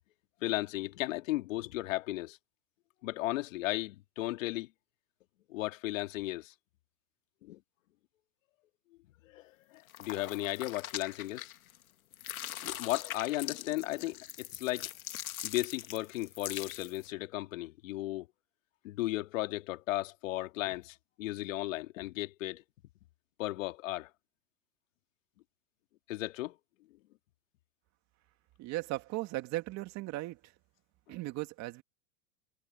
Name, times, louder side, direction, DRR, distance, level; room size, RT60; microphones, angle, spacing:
voice 1, 0.4-2.4 3.0-4.7 5.5-6.5 7.4-7.6 9.2-9.4 9.7-11.5 12.6-14.9 15.4-18.3 18.8-22.6 23.4-24.1 26.1-26.6, left 17 dB, 70° left, 2.2 m, -35 dB
sound 1, 9.9-11.8 12.1-17.1, left 12 dB, 90° left, 2.0 m, -42 dB
voice 2, 28.6-30.5 31.1-31.8, right 18 dB, 40° right, 2.5 m, -37 dB
hypercardioid pair, 125°, 41 cm